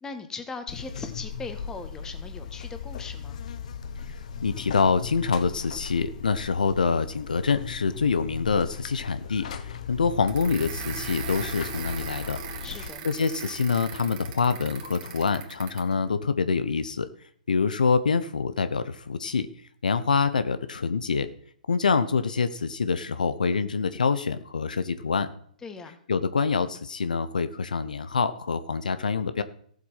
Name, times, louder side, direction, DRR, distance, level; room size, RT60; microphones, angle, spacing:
voice 1, 0.0-3.4 12.6-13.1 25.6-26.0, left 4 dB, 10° left, 7 dB, 1.6 m, -39 dB
Buzz, 0.7-12.9, left 7 dB, 55° left, 1.2 m, -38 dB
voice 2, 4.4-12.4 13.0-17.1 17.5-19.5 19.8-21.3 21.7-25.3 26.1-29.4, left 5 dB, 75° left, 12 dB, 0.9 m, -26 dB
sound 1, 10.3-15.9, right 8 dB, 40° right, 2.4 m, -39 dB
15.0 x 7.8 x 5.6 m, 0.62 s
figure-of-eight pair, 120°, 4 cm